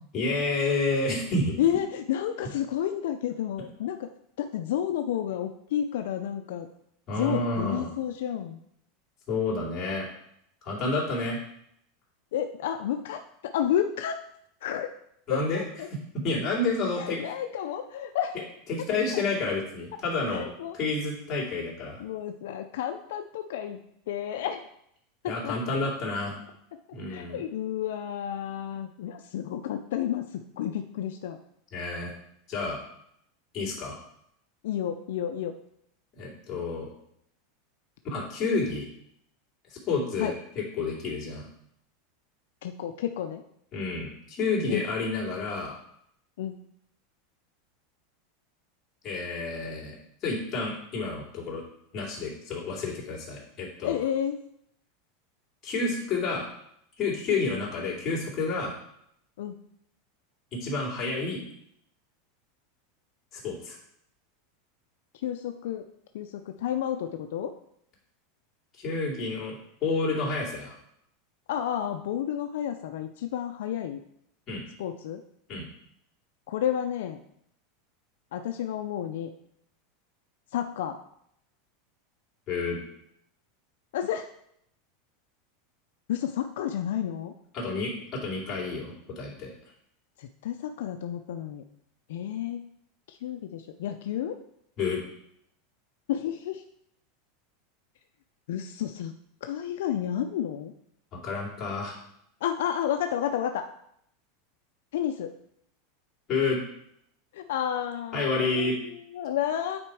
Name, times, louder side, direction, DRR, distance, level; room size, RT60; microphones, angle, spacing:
voice 1, 0.1-1.6 7.1-7.9 9.3-10.1 10.6-11.4 15.3-15.6 15.9-17.2 18.7-20.5 20.7-22.0 25.2-26.4 26.9-27.4 31.7-32.1 32.5-32.8 33.5-34.0 36.2-36.9 38.0-38.9 39.7-41.5 43.7-45.7 49.0-50.0 50.2-51.6 51.9-54.0 55.6-56.5 57.0-58.7 60.5-61.4 63.3-63.8 68.8-69.5 69.8-70.8 74.5-74.6 75.5-75.6 82.5-82.8 87.5-89.5 94.8-95.0 101.2-102.0 106.3-106.6 108.1-108.8, left 3 dB, 30° left, -4 dB, 2.8 m, -29 dB
voice 2, 1.6-4.1 4.4-6.7 7.2-8.6 12.3-14.2 14.6-14.9 15.3-15.9 16.9-18.5 19.1-19.2 20.3-20.8 22.0-23.8 24.1-24.7 25.2-25.8 27.1-31.4 34.6-35.6 40.2-40.3 42.6-43.4 44.7-44.9 46.4-46.6 53.8-54.4 59.4-59.6 65.2-65.9 66.1-67.5 71.5-74.0 74.8-75.2 76.5-77.2 78.3-79.3 80.5-81.0 83.9-84.3 86.1-87.3 90.2-91.6 92.1-92.6 93.1-94.4 96.1-96.6 98.5-99.1 99.4-100.7 102.4-103.6 104.9-105.3 107.3-109.8, left 10 dB, 80° left, 6 dB, 0.5 m, -31 dB
8.7 x 4.4 x 4.8 m, 0.73 s
supercardioid pair, 150°, 0 cm